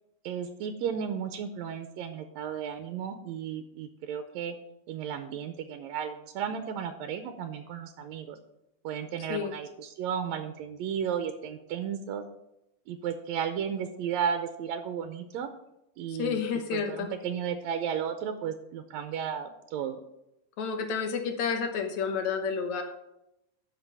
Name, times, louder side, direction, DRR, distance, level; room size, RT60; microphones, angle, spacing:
voice 1, 0.2-4.6 4.9-8.4 8.8-12.3 12.9-15.5 16.0-16.4 16.7-20.0, right 8 dB, 75° right, 8 dB, 1.8 m, -34 dB
voice 2, 16.2-17.1 20.6-22.8, left 6 dB, 70° left, 6 dB, 2.3 m, -30 dB
12.0 x 5.2 x 5.5 m, 0.86 s
omnidirectional pair, 3.5 m